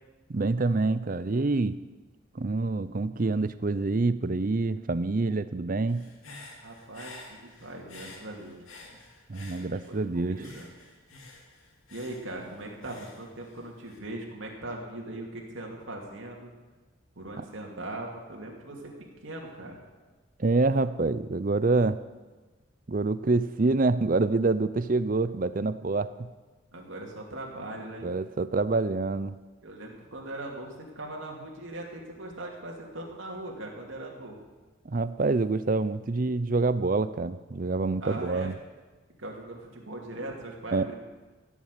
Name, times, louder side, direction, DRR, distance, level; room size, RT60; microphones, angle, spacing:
voice 1, 0.3-1.8 2.3-6.1 9.3-10.4 17.4-17.5 20.4-22.0 22.9-26.3 28.0-29.3 34.9-38.5 40.7-40.9, right 3 dB, 40° right, 14 dB, 0.5 m, -26 dB
Human voice / Breathing, 5.9-10.0 10.4-14.0, left 3 dB, 85° left, 2.6 m, -50 dB
voice 2, 6.6-8.6 8.9-9.0 9.8-10.0 10.3-10.7 11.9-16.5 17.2-18.9 19.2-19.8 26.7-28.1 29.6-34.4 38.0-38.5 39.2-40.9, right 1 dB, 70° right, -1 dB, 2.8 m, -40 dB
15.5 x 7.3 x 8.5 m, 1.3 s
head